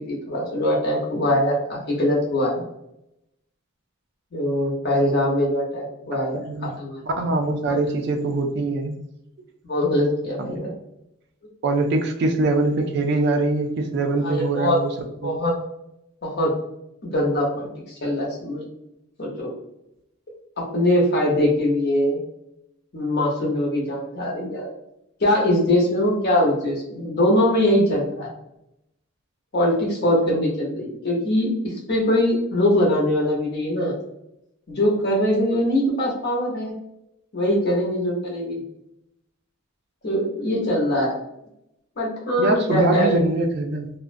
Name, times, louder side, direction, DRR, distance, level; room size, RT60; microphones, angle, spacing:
voice 1, 0.1-2.6 4.3-7.0 9.6-10.7 14.2-14.8 15.2-15.5 16.2-16.5 17.0-17.7 18.0-18.6 19.2-19.5 20.6-22.2 22.9-24.7 25.2-28.3 29.5-31.5 31.9-33.9 34.7-36.7 37.3-38.6 40.0-41.1 42.0-43.1, left 1 dB, 45° left, -2 dB, 0.7 m, -22 dB
voice 2, 6.1-6.7 7.0-8.9 10.4-10.6 11.6-14.9 15.2-15.3 42.4-43.9, right 2 dB, 50° right, 4 dB, 0.3 m, -23 dB
2.4 x 2.1 x 2.5 m, 0.81 s
head